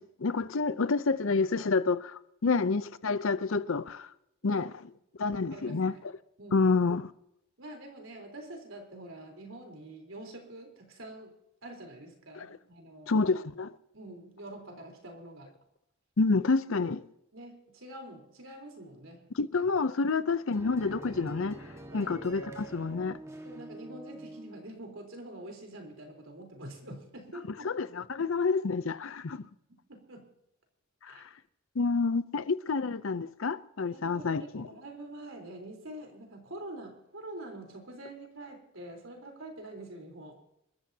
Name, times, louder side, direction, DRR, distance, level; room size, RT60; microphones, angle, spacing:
voice 1, 0.0-4.1 4.4-4.7 5.2-5.9 6.5-7.1 12.3-12.6 13.1-13.7 16.2-17.0 19.3-21.6 21.9-23.2 27.6-29.5 31.0-31.2 31.8-34.7, left 4 dB, 65° left, 0.6 m, -28 dB
voice 2, 5.5-6.0 6.4-6.7 7.6-11.4 11.6-13.2 13.9-15.5 17.3-19.3 21.9-22.2 23.4-27.7 29.9-30.3 31.1-31.2 33.9-40.4, right 1 dB, 65° right, 3.9 m, -46 dB
sound 1, 20.5-24.7, right 1 dB, 15° right, 1.6 m, -45 dB
27.0 x 13.5 x 2.8 m
head